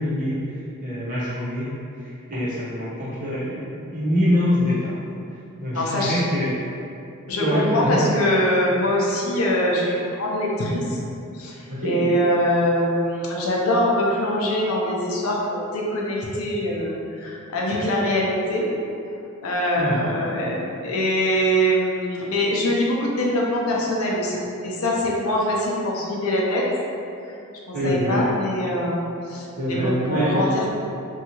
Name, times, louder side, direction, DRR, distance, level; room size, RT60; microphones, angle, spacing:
voice 1, 0.0-5.1 5.6-6.5 7.4-8.1 11.7-12.1 19.8-20.1 27.7-28.3 29.6-30.5, equal, 40° right, -10 dB, 0.8 m, -24 dB
voice 2, 5.7-6.2 7.3-11.0 11.3-18.6 19.4-26.7 27.7-30.7, equal, 75° left, -3 dB, 0.5 m, -23 dB
2.7 x 2.3 x 2.9 m, 2.6 s
head